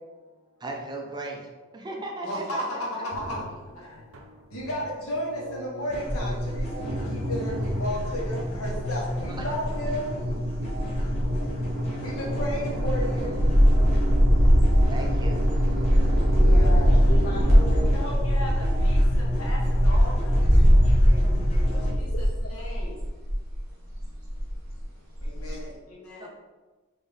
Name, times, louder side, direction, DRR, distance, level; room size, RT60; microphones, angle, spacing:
voice 1, 0.6-2.8 9.4-9.5 14.9-15.4 26.2-26.3, right 2 dB, 20° right, 1 dB, 0.4 m, -36 dB
voice 2, 2.2-10.2 10.5-13.4 16.6-17.0 17.8-23.3 23.8-24.4 25.2-26.3, left 1 dB, 85° left, -3 dB, 1.1 m, -35 dB
sound 1, 3.1-6.2 6.8-8.6 9.6-18.1, right 2 dB, 70° right, 0.5 m, -36 dB
sound 2, 5.9-21.9, left 1 dB, 30° left, 1.0 m, -32 dB
sound 3, 6.1-6.7 7.2-7.3 7.6-23.6 23.9-24.8 25.2-25.5, equal, 50° right, 1.3 m, -21 dB
voice 3, 16.4-16.8 17.1-18.1 20.4-20.7 21.7-22.0 25.4-25.6, left 2 dB, 50° left, -2 dB, 0.4 m, -37 dB
4.1 x 2.6 x 3.3 m, 1.3 s
head